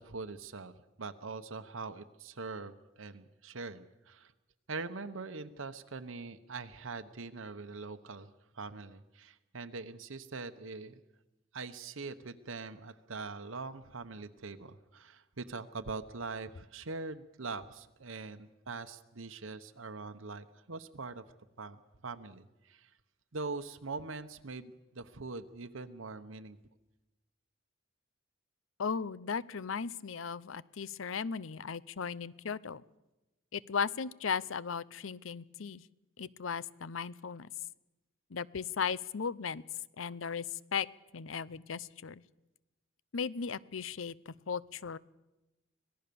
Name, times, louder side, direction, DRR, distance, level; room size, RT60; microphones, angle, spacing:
voice 1, 0.0-4.3 4.7-11.0 11.5-21.2 21.6-22.9 23.3-26.6, right 4 dB, 85° right, 8 dB, 1.0 m, -43 dB
voice 2, 28.8-32.8 33.5-35.8 36.2-37.5 38.3-39.6 40.0-40.9 41.1-42.2 43.1-45.0, left 6 dB, 85° left, 20 dB, 0.7 m, -36 dB
25.5 x 18.0 x 6.9 m, 1.0 s
head